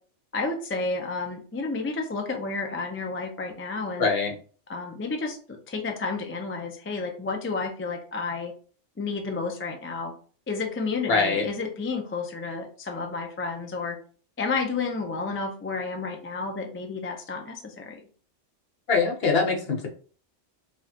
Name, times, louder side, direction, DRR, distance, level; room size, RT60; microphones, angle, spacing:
voice 1, 0.3-4.1 4.7-8.5 9.0-10.1 10.5-14.0 14.4-18.0, left 4 dB, 20° left, 2 dB, 0.3 m, -31 dB
voice 2, 4.0-4.3 11.1-11.4 18.9-19.9, left 4 dB, 55° left, 1 dB, 1.1 m, -23 dB
5.0 x 2.4 x 2.8 m, 0.41 s
omnidirectional pair, 1.2 m